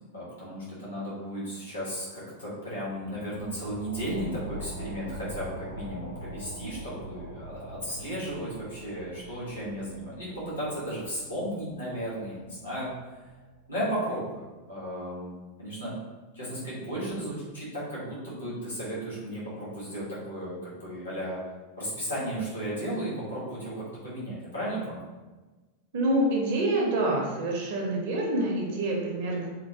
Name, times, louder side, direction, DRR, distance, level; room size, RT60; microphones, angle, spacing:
voice 1, 0.1-13.2 13.7-15.3 15.6-15.9 16.3-21.4 21.8-25.1, equal, 75° left, -8 dB, 1.2 m, -35 dB
sound 1, 2.9-14.0, equal, 85° right, 0.3 m, -44 dB
voice 2, 25.9-29.5, right 1 dB, 50° right, -2 dB, 0.7 m, -27 dB
3.0 x 2.1 x 2.7 m, 1.2 s
figure-of-eight pair, 90°, 0 cm